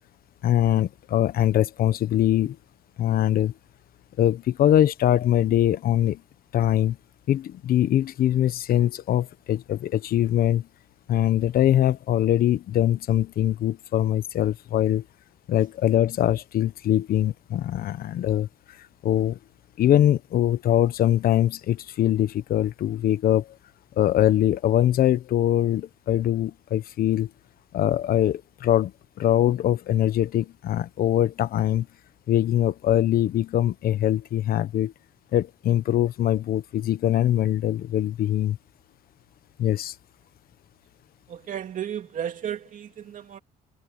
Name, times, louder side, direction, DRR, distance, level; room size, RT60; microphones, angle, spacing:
voice 1, 0.4-2.6 3.0-3.5 4.2-6.2 6.5-7.0 7.3-10.7 11.1-15.0 15.5-18.5 19.0-19.4 19.8-23.5 24.0-27.3 27.7-28.9 29.2-31.9 32.3-34.9 35.3-38.6 39.6-39.9, left 12 dB, 60° left, 1.2 m, -22 dB
voice 2, 41.3-43.4, right 9 dB, 50° right, 2.6 m, -33 dB
cardioid pair, 110°, 17 cm